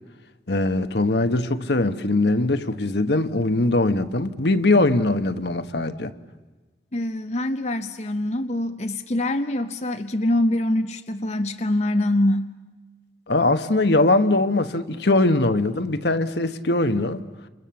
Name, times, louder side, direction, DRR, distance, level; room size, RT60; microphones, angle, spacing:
voice 1, 0.5-6.1 13.3-17.2, left 2 dB, 65° left, 1.2 m, -21 dB
voice 2, 6.9-12.5, left 1 dB, 40° left, 0.8 m, -24 dB
28.5 x 28.5 x 7.1 m
head